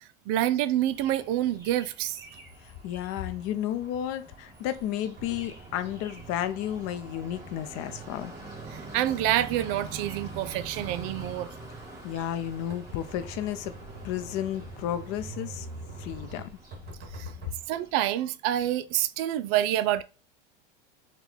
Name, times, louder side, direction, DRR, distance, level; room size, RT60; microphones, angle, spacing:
voice 1, 0.3-2.2 8.7-11.5 17.1-17.3 17.7-20.0, right 13 dB, 50° right, 0.4 m, -27 dB
sound 1, 0.9-17.9, right 3 dB, 10° right, 1.6 m, -46 dB
voice 2, 2.6-8.3 12.0-13.7 14.0-15.7 16.0-16.4, left 11 dB, 50° left, 0.6 m, -32 dB
sound 2, 5.2-17.6, right 3 dB, 35° right, 1.7 m, -45 dB
4.3 x 2.3 x 4.0 m
supercardioid pair, 115°, 30 cm